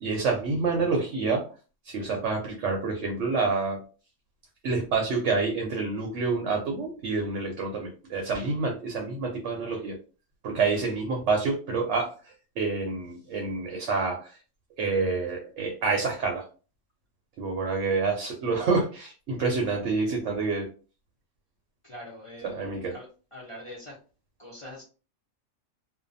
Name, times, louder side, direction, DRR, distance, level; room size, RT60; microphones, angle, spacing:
voice 1, 0.0-1.4 1.8-3.8 4.6-10.0 10.4-14.4 14.8-16.5 17.4-20.7 22.4-22.9, right 4 dB, 65° right, 1 dB, 0.8 m, -28 dB
voice 2, 21.8-22.6 22.9-24.0 24.4-24.8, left 1 dB, 60° left, -5 dB, 0.3 m, -43 dB
2.6 x 2.2 x 2.5 m, 0.36 s
omnidirectional pair, 1.5 m